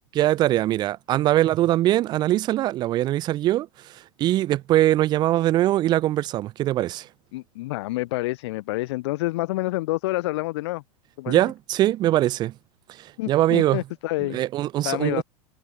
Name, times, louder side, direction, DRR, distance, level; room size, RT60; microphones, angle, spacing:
voice 1, 0.1-7.1 11.3-12.5 12.9-13.8 14.3-15.2, right 14 dB, 25° right, 0.4 m, -22 dB
voice 2, 7.3-10.8 11.2-11.4 13.2-14.4 14.8-15.2, left 19 dB, 50° left, 0.7 m, -28 dB
figure-of-eight pair, 90°, 18 cm